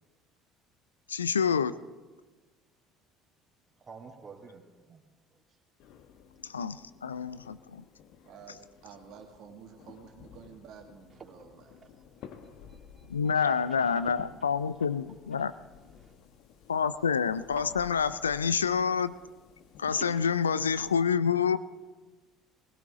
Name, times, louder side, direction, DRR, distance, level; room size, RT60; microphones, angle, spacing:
voice 1, 1.1-1.8 6.4-7.8 13.1-15.5 16.7-19.1 19.8-21.6, left 6 dB, 85° left, 15 dB, 0.4 m, -28 dB
voice 2, 3.8-5.0 11.2-11.3 12.1-12.3 12.7-14.0 16.0-16.1 17.6-17.7 19.9-20.1, right 5 dB, 30° right, 1 dB, 3.0 m, -49 dB
sound 1, 5.8-21.0, left 8 dB, 60° left, 1.1 m, -54 dB
voice 3, 8.2-11.9, right 7 dB, 60° right, 3 dB, 2.0 m, -51 dB
19.5 x 17.0 x 3.7 m, 1.3 s
hypercardioid pair, 60°, 0 cm